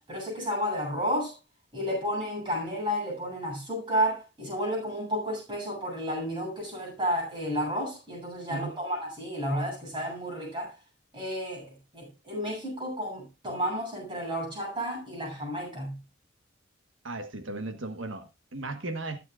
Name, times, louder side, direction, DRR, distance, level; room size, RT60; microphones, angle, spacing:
voice 1, 0.0-1.3 1.7-10.7 11.1-16.0, equal, 25° right, 7.9 m, -32 dB
voice 2, 17.0-19.2, right 2 dB, 70° right, 1.5 m, -36 dB
21.0 x 7.7 x 2.5 m
head